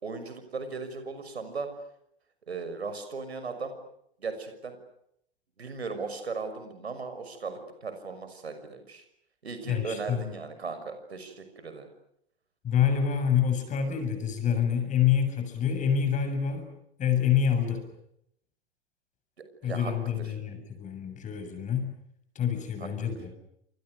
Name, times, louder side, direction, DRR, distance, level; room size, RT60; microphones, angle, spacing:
voice 1, 0.0-1.7 2.5-3.7 4.2-4.8 5.6-9.0 9.4-11.9 19.6-20.3 22.8-22.9, right 4 dB, 80° right, 9 dB, 6.2 m, -37 dB
voice 2, 9.7-10.3 12.6-16.7 17.0-17.9 19.6-21.9 22.4-23.3, left 8 dB, 25° left, 7 dB, 7.3 m, -27 dB
29.5 x 27.5 x 6.6 m, 0.74 s
figure-of-eight pair, 110°, 32 cm